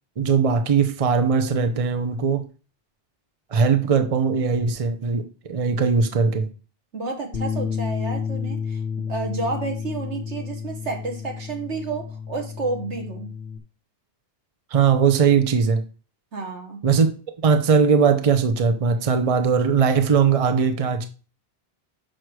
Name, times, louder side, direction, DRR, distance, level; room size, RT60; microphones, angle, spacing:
voice 1, 0.2-2.4 3.5-6.5 14.7-15.8 16.8-17.1 17.4-21.1, right 6 dB, 35° right, 0.8 m, -20 dB
voice 2, 6.9-8.8 9.1-13.3 16.3-16.8, right 3 dB, 80° right, 1.9 m, -30 dB
Bass guitar, 7.3-13.6, left 6 dB, 55° left, 1.1 m, -31 dB
6.3 x 6.2 x 4.8 m
omnidirectional pair, 1.2 m